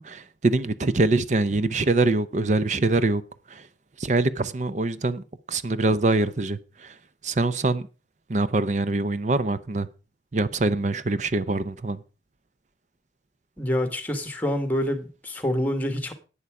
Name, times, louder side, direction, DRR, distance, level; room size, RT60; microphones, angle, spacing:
voice 1, 0.0-3.2 3.5-3.6 4.0-6.9 7.2-7.9 8.3-9.9 10.3-12.0, right 2 dB, 40° right, 0.6 m, -24 dB
voice 2, 13.6-16.1, left 1 dB, 10° left, 1.5 m, -26 dB
11.0 x 8.7 x 4.8 m
head